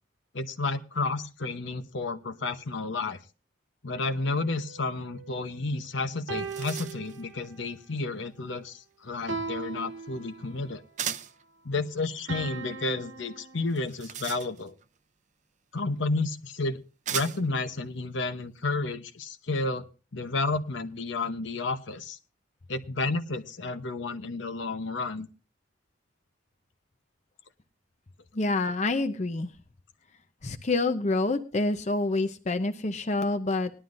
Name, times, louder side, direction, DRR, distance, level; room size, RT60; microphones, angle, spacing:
voice 1, 0.3-3.2 3.8-10.8 11.6-14.7 15.7-16.8 17.1-19.9 20.1-22.2 22.7-25.3, left 3 dB, 70° left, 9 dB, 0.9 m, -31 dB
sound 1, 4.0-5.7 6.3-7.7 9.3-10.7 12.3-13.8, right 4 dB, 80° right, 1.6 m, -39 dB
sound 2, 5.8-5.9 6.2-7.2 11.0-11.4 13.7-14.9 16.0-16.1 17.1-17.6, right 9 dB, 40° right, 0.5 m, -36 dB
voice 2, 28.3-29.5 30.4-33.7, left 2 dB, 35° left, 7 dB, 0.7 m, -27 dB
19.5 x 11.5 x 2.6 m, 0.33 s
head